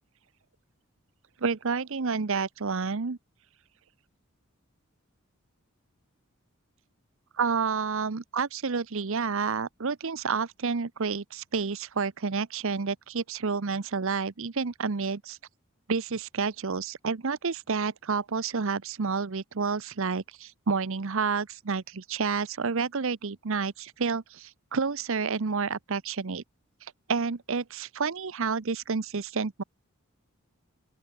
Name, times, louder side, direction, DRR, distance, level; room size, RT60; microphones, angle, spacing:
voice 1, 1.4-3.2 7.4-15.4 15.9-26.4 27.1-29.6, right 5 dB, 65° right, 0.8 m, -29 dB
open air
head